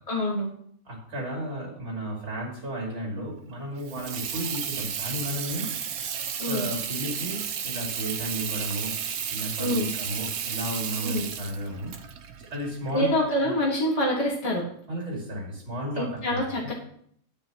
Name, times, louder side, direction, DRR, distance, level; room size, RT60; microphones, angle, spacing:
voice 1, 0.1-0.5 6.4-6.7 9.6-9.9 11.0-11.2 12.9-14.6 16.0-16.7, left 1 dB, 25° left, -4 dB, 1.7 m, -26 dB
voice 2, 0.8-5.7 6.5-8.9 9.3-11.9 12.4-13.5 14.9-16.7, right 1 dB, 55° right, -3 dB, 2.9 m, -33 dB
Water tap faucet / Sink (filling or washing), 3.8-13.4, right 8 dB, 85° right, 1.2 m, -33 dB
10.5 x 9.4 x 3.0 m, 0.67 s
omnidirectional pair, 1.5 m